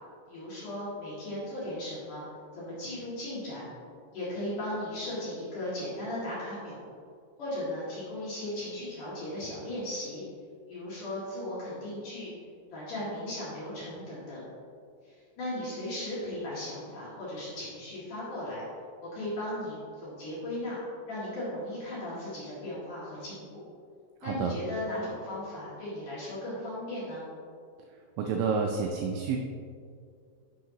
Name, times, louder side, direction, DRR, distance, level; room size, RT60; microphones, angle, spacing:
voice 1, 0.3-2.2 2.5-3.7 4.1-6.8 7.4-10.2 10.7-12.3 12.7-14.4 15.0-18.6 19.0-23.6 24.2-27.2, left 1 dB, 50° left, -10 dB, 3.1 m, -37 dB
voice 2, 24.2-24.5 28.2-29.4, right 5 dB, 85° right, 2 dB, 2.6 m, -29 dB
10.0 x 6.6 x 2.9 m, 2.3 s
omnidirectional pair, 5.8 m